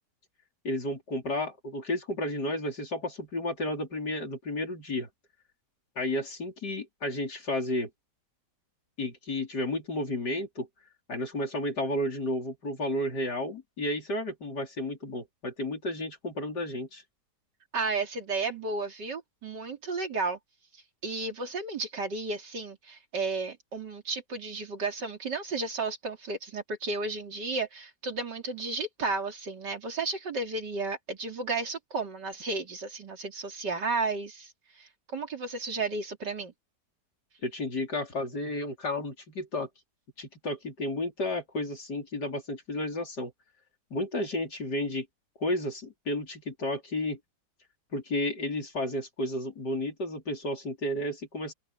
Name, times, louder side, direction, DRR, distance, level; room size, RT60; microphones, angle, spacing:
voice 1, 0.6-5.1 6.0-7.9 9.0-10.7 11.1-17.0 37.4-39.7 40.2-43.3 43.9-45.1 45.4-47.2 47.9-51.5, left 1 dB, 70° left, 5.0 m, -32 dB
voice 2, 17.7-20.4 21.0-34.5 34.8-36.5, right 3 dB, 80° right, 3.6 m, -33 dB
open air
omnidirectional pair, 1.8 m